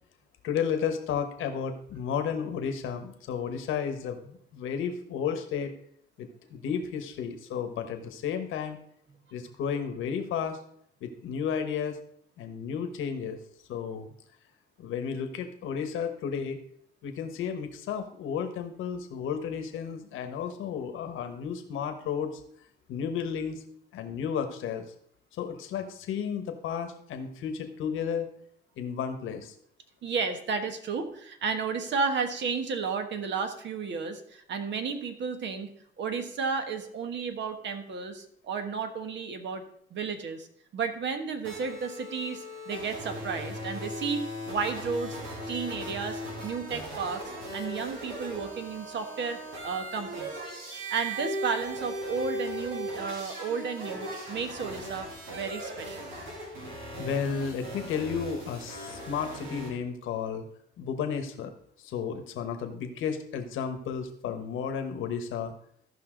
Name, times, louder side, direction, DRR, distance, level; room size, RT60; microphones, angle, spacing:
voice 1, 0.4-5.7 6.2-8.8 9.3-10.6 11.0-12.0 12.4-13.4 13.7-14.1 14.8-16.6 17.0-22.4 22.9-23.6 23.9-24.8 25.4-28.3 28.8-29.5 57.0-60.4 60.8-61.5 61.8-65.5, left 7 dB, 85° left, 7 dB, 1.2 m, -33 dB
voice 2, 30.0-35.7 36.0-39.6 39.9-40.5 40.7-45.2 45.5-47.2 47.5-49.4 49.6-50.3 50.9-56.1, right 5 dB, 65° right, 7 dB, 1.4 m, -33 dB
sound 1, 41.4-59.7, right 1 dB, 90° right, 2.9 m, -38 dB
14.0 x 5.6 x 3.8 m, 0.66 s
cardioid pair, 90°, 20 cm